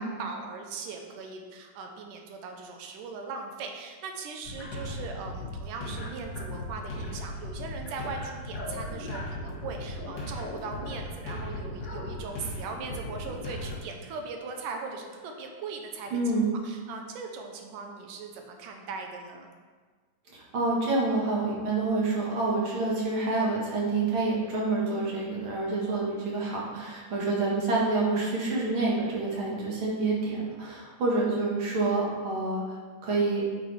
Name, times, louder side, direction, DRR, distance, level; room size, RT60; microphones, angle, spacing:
voice 1, 0.0-16.2 16.5-19.5, right 4 dB, 85° right, 3 dB, 2.3 m, -39 dB
sound 1, 4.4-13.8, left 1 dB, 40° left, 1.8 m, -37 dB
voice 2, 16.1-16.6 20.3-32.8 33.0-33.4, right 3 dB, 50° right, -4 dB, 1.9 m, -27 dB
8.8 x 6.3 x 3.3 m, 1.5 s
omnidirectional pair, 3.7 m